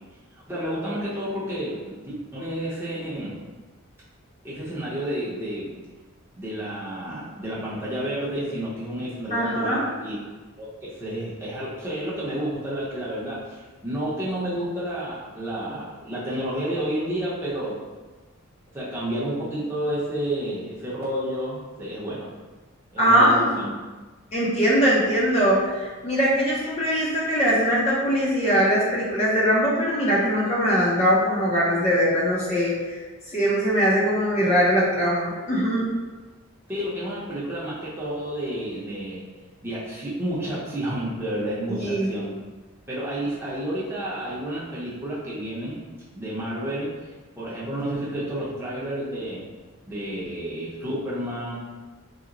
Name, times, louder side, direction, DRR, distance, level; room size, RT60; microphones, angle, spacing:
voice 1, 0.3-3.4 4.4-5.7 6.3-10.2 10.6-17.8 18.7-22.3 22.9-23.7 36.7-39.2 39.6-42.3 42.9-45.8 46.1-46.9 47.4-49.4 49.9-51.6, right 1 dB, 10° right, -9 dB, 0.7 m, -30 dB
voice 2, 9.3-9.9 23.0-23.5 24.3-35.9 41.7-42.1, equal, 30° left, -6 dB, 0.5 m, -21 dB
2.8 x 2.0 x 3.7 m, 1.3 s
head